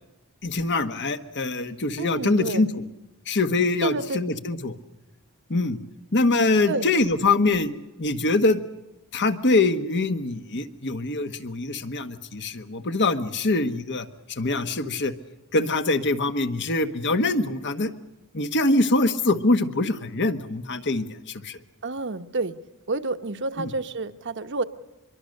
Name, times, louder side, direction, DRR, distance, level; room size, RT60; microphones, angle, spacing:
voice 1, 0.4-2.7 3.3-4.7 5.5-5.8 6.1-7.7 8.0-8.6 9.1-15.1 15.5-17.9 18.3-21.6 23.6-23.7, left 2 dB, 55° left, 9 dB, 1.3 m, -24 dB
voice 2, 2.0-2.6 3.8-4.2 6.7-6.9 21.8-22.6 22.9-24.6, right 3 dB, 55° right, 10 dB, 1.0 m, -29 dB
25.0 x 23.0 x 6.6 m, 0.98 s
head